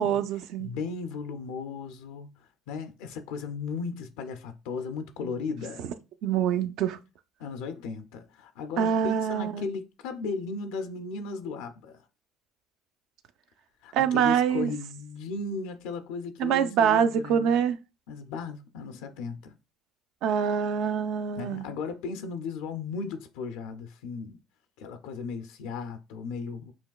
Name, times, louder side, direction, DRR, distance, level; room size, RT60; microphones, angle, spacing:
voice 1, 0.0-0.8 6.2-7.0 8.8-9.6 13.9-14.7 16.4-17.8 20.2-21.7, right 8 dB, 70° right, 0.4 m, -25 dB
voice 2, 0.6-5.8 7.4-12.0 13.8-17.6 18.1-19.6 21.4-24.4 24.8-26.7, left 4 dB, 85° left, 0.4 m, -36 dB
5.8 x 2.3 x 2.3 m
supercardioid pair, 90°, 0 cm